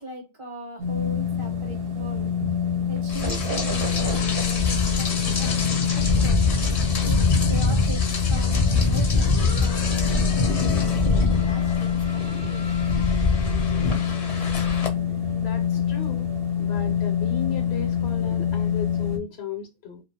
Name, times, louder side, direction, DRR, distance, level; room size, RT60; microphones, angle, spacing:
voice 1, 0.0-2.3 2.9-5.1 5.4-5.5 5.9-6.4 7.0-7.2 7.5-8.0 8.3-12.8, right 1 dB, 30° right, 0.7 m, -39 dB
sound 1, 0.8-19.2, left 8 dB, 65° right, 0.8 m, -26 dB
Rain, 3.1-14.9, left 3 dB, 45° left, 0.6 m, -24 dB
voice 2, 15.1-16.3 16.6-20.0, left 6 dB, 75° left, 0.8 m, -36 dB
2.3 x 2.2 x 2.7 m
omnidirectional pair, 1.1 m